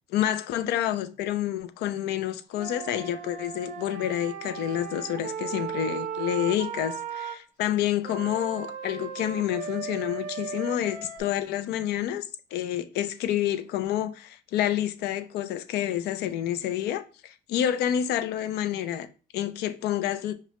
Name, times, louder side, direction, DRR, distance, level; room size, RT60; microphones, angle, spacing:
voice 1, 0.1-12.2 12.5-19.1 19.3-20.3, left 11 dB, 75° left, 0.4 m, -28 dB
Wind instrument woodwind instrument, 2.5-7.4 8.0-11.2, right 7 dB, 50° right, 0.6 m, -36 dB
4.7 x 2.1 x 2.9 m
cardioid pair, 110°, 17 cm